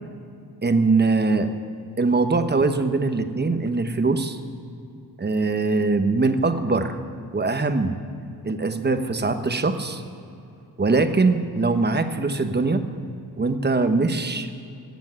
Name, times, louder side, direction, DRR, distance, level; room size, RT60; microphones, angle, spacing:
voice 1, 0.6-1.5 2.0-4.4 5.2-7.0 7.3-7.9 8.4-10.0 10.8-12.8 13.4-14.5, right 3 dB, 25° right, 8 dB, 1.1 m, -22 dB
17.5 x 7.4 x 9.8 m, 2.6 s
cardioid pair, 85°, 39 cm